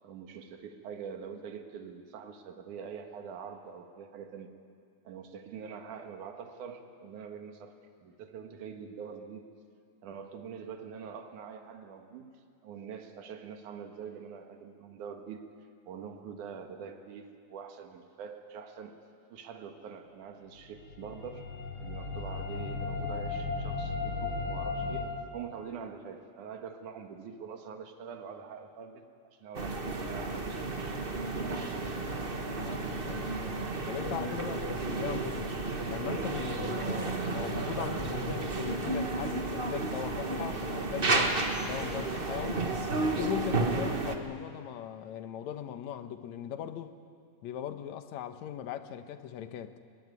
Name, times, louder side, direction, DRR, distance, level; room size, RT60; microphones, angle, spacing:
voice 1, 0.0-4.5 5.0-9.5 10.0-15.4 15.9-18.9 19.3-21.5 21.8-31.0, right 6 dB, 75° right, 5 dB, 3.1 m, -44 dB
sound 1, 20.7-25.1, left 4 dB, 40° left, 4.8 m, -35 dB
sound 2, 29.5-44.2, right 2 dB, 55° right, 0.6 m, -32 dB
voice 2, 32.6-33.6 33.9-35.5 35.9-42.6 43.0-46.9 47.4-49.7, left 10 dB, 70° left, 9 dB, 2.2 m, -39 dB
22.5 x 22.0 x 9.6 m, 2.3 s
omnidirectional pair, 3.6 m